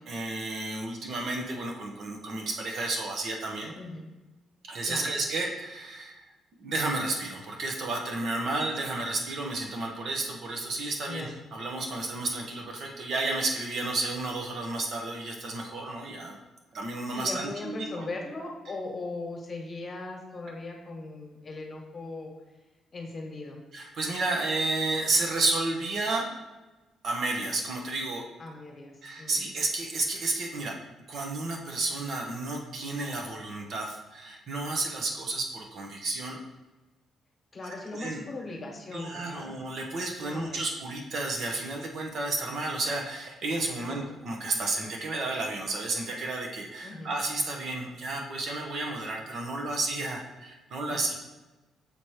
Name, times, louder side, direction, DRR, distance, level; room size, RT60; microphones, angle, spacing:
voice 1, 0.1-3.7 4.6-6.2 6.6-16.4 16.7-18.0 23.7-26.3 27.0-28.3 29.0-30.8 31.1-36.4 37.9-38.2 38.9-51.1, right 2 dB, 60° right, 1 dB, 1.1 m, -32 dB
voice 2, 3.7-4.0 4.8-5.2 11.1-11.3 17.1-22.3 22.9-23.6 28.4-29.4 37.5-39.5 40.2-40.6 43.8-44.1 46.8-47.1 50.9-51.1, left 2 dB, 35° left, 1 dB, 1.3 m, -39 dB
7.0 x 2.9 x 4.8 m, 1.1 s
cardioid pair, 90°, 0 cm